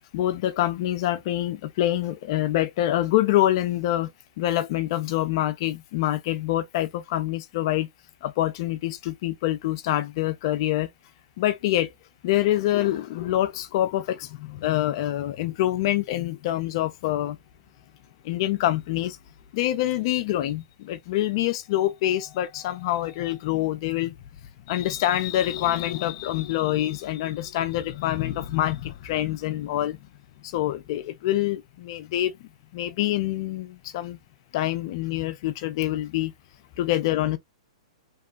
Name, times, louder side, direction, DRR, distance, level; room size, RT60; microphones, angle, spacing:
voice 1, 0.1-7.9 8.2-10.9 11.4-11.9 12.2-17.4 18.2-19.2 19.5-24.1 24.7-30.0 30.4-32.3 32.7-34.2 34.5-36.3 36.8-37.4, left 14 dB, 45° left, 0.4 m, -26 dB
2.9 x 2.2 x 2.2 m
hypercardioid pair, 140°, 3 cm